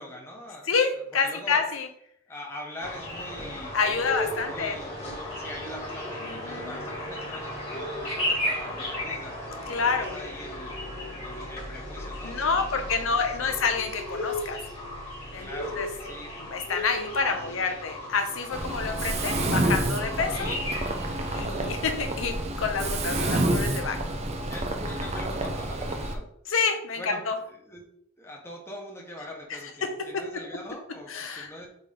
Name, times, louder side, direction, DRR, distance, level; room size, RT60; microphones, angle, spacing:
voice 1, 0.0-0.7 1.2-1.6 2.3-3.8 4.0-5.1 5.4-9.4 9.8-10.7 11.2-13.7 15.4-16.3 17.2-17.8 18.7-18.8 20.4-20.9 24.5-26.3 26.9-27.8 28.2-31.7, left 1 dB, 15° left, -1 dB, 1.3 m, -43 dB
voice 2, 0.7-1.9 3.7-4.8 6.2-6.8 9.7-10.2 12.2-14.6 15.3-15.9 16.4-20.5 21.3-24.0 26.5-27.3 31.1-31.5, left 5 dB, 75° left, 6 dB, 0.7 m, -28 dB
sound 1, 2.8-21.4, left 1 dB, 30° left, 2.4 m, -35 dB
Mechanisms, 18.5-26.1, right 1 dB, 35° right, 0.7 m, -29 dB
8.1 x 3.3 x 3.8 m, 0.71 s
head